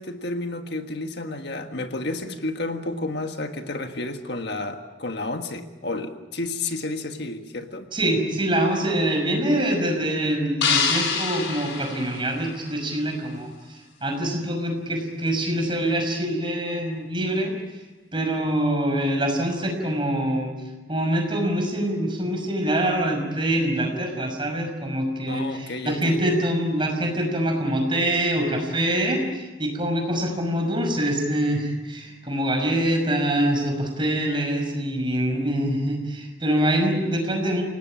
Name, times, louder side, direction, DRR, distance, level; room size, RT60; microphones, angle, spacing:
voice 1, 0.0-7.9 25.3-26.2, left 2 dB, 55° left, 6 dB, 1.6 m, -31 dB
voice 2, 7.9-17.5 18.1-20.5 20.9-37.6, right 1 dB, 25° right, 3 dB, 5.8 m, -24 dB
sound 1, 10.6-12.9, left 6 dB, 75° left, 4.2 m, -26 dB
28.5 x 18.5 x 8.8 m, 1.2 s
head